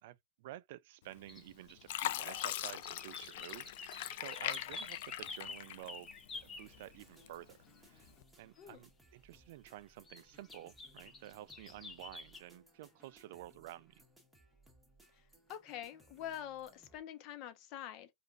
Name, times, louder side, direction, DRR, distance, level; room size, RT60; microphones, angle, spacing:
voice 1, 0.0-8.1 8.4-13.9, right 14 dB, 65° right, 0.3 m, -51 dB
Fill (with liquid), 1.1-1.5 1.9-6.3 6.7-7.5 8.1-8.2, left 13 dB, 70° left, 0.4 m, -41 dB
sound 1, 1.3-7.3 7.8-7.9 8.1-8.2 8.6-8.7 10.1-12.4, left 3 dB, 20° left, 1.0 m, -50 dB
sound 2, 6.3-17.0, right 1 dB, 5° right, 1.4 m, -66 dB
voice 2, 15.1-18.1, left 11 dB, 50° left, 0.9 m, -46 dB
5.0 x 2.5 x 2.4 m
hypercardioid pair, 115°, 0 cm